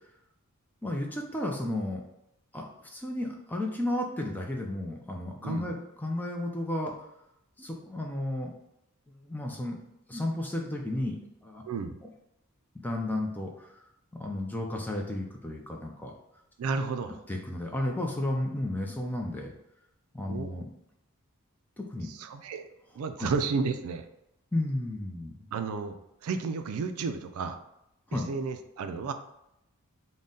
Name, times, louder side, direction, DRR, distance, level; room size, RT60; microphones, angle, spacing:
voice 1, 0.8-2.0 2.5-6.9 7.6-8.5 9.2-9.8 10.1-11.2 11.4-11.6 12.8-13.5 14.1-16.1 17.3-19.5 20.1-20.7 21.8-22.1 23.2-23.3 24.5-25.3 28.1-28.3, left 1 dB, 10° left, 0 dB, 0.4 m, -33 dB
voice 2, 16.6-17.2 20.3-20.5 22.0-22.7 23.0-24.1 25.5-26.0 26.2-27.6 28.1-29.1, right 4 dB, 75° right, 8 dB, 0.3 m, -32 dB
3.9 x 2.1 x 3.6 m, 0.85 s
head